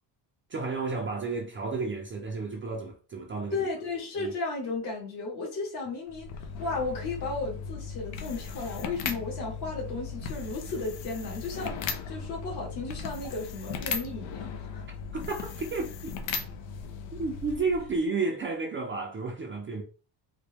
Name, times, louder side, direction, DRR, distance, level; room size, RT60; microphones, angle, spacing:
voice 1, 0.5-3.7 4.2-4.3 14.9-16.1 17.1-19.8, right 3 dB, 30° right, 0.5 m, -32 dB
voice 2, 3.5-14.8, left 3 dB, 60° left, 2.0 m, -34 dB
sound 1, 6.1-18.0, left 6 dB, 85° left, 0.8 m, -37 dB
4.0 x 2.2 x 3.3 m
cardioid pair, 155°, 44 cm